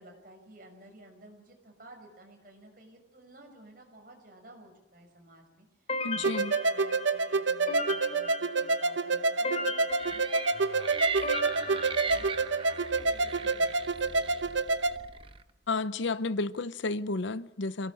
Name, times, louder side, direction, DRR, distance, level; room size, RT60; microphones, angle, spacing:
voice 1, 0.0-14.7, right 1 dB, 45° right, 6.4 m, -53 dB
sound 1, 5.9-12.8, left 1 dB, 35° left, 3.7 m, -38 dB
voice 2, 6.0-6.5 15.7-17.9, left 3 dB, 75° left, 0.7 m, -31 dB
sound 2, 6.2-15.0, right 3 dB, 75° right, 0.9 m, -28 dB
sound 3, 10.0-15.4, right 5 dB, 25° right, 0.9 m, -38 dB
26.0 x 18.5 x 8.8 m
head